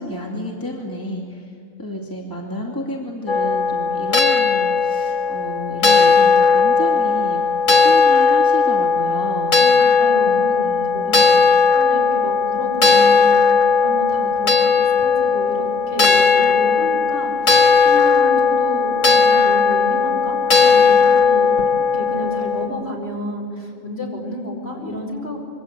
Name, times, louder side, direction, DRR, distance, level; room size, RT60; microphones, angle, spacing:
voice 1, 0.0-1.5 1.8-7.4 7.7-9.5 10.1-11.5, equal, 15° left, -2 dB, 2.6 m, -31 dB
sound 1, 3.3-22.7, left 5 dB, 70° left, 2.0 m, -16 dB
voice 2, 9.6-11.4 11.7-25.4, left 1 dB, 50° left, 0 dB, 5.4 m, -31 dB
26.0 x 23.0 x 8.2 m, 2.4 s
omnidirectional pair, 1.4 m